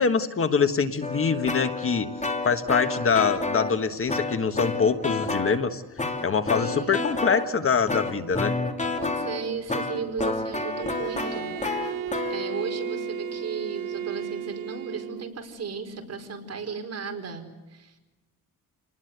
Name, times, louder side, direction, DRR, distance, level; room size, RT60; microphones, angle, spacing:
voice 1, 0.0-2.1 2.4-5.8 6.2-8.5, left 5 dB, 40° left, 9 dB, 1.5 m, -24 dB
sound 1, 1.0-3.8 4.1-5.6 6.0-7.5 7.9-14.9, left 3 dB, 20° left, 2.8 m, -30 dB
voice 2, 6.5-7.1 9.0-11.9 12.3-18.0, right 5 dB, 45° right, 4 dB, 4.9 m, -35 dB
Bowed string instrument, 10.5-15.4, right 10 dB, 70° right, 1.0 m, -34 dB
28.5 x 20.0 x 8.1 m, 1.1 s
cardioid pair, 130°, 35 cm